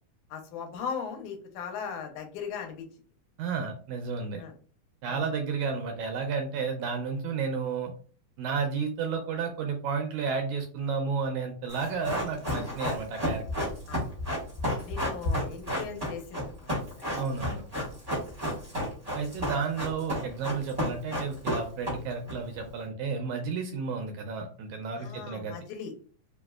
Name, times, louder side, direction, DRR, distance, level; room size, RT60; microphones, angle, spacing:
voice 1, 0.3-2.9 4.4-4.5 5.1-5.2 13.9-14.0 14.8-16.7 17.7-17.9 25.0-25.9, left 6 dB, 80° left, 4 dB, 2.0 m, -38 dB
voice 2, 3.4-4.5 5.0-7.9 8.4-13.7 17.2-17.6 19.1-25.6, right 5 dB, 80° right, 4 dB, 1.8 m, -32 dB
Run, 11.7-22.3 22.6-22.7, equal, 35° right, 0.6 m, -31 dB
4.9 x 2.0 x 2.3 m, 0.41 s
omnidirectional pair, 3.6 m